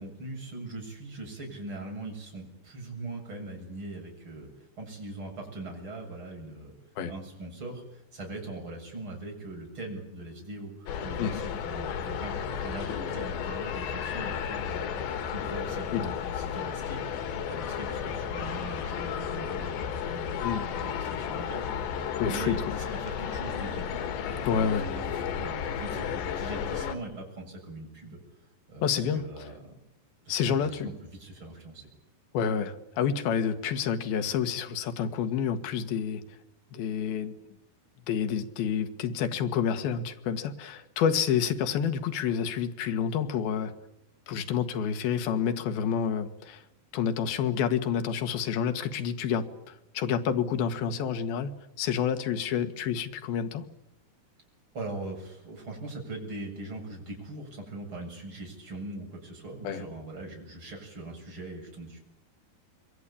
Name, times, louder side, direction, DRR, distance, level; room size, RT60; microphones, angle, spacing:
voice 1, 0.0-4.5 4.7-6.7 7.0-23.9 24.3-25.1 25.3-28.2 28.7-29.7 30.2-31.9 54.7-62.0, right 2 dB, 30° right, 1 dB, 8.1 m, -41 dB
sound 1, 10.9-27.0, left 8 dB, 90° left, 4.1 m, -33 dB
voice 2, 22.2-22.6 24.4-24.9 28.8-29.2 30.3-30.9 32.3-36.2 36.7-37.3 38.1-43.7 44.3-46.6 46.9-51.5 51.8-53.6 59.6-59.8, left 7 dB, 65° left, 8 dB, 3.4 m, -28 dB
26.5 x 22.5 x 8.7 m, 0.86 s
omnidirectional pair, 4.8 m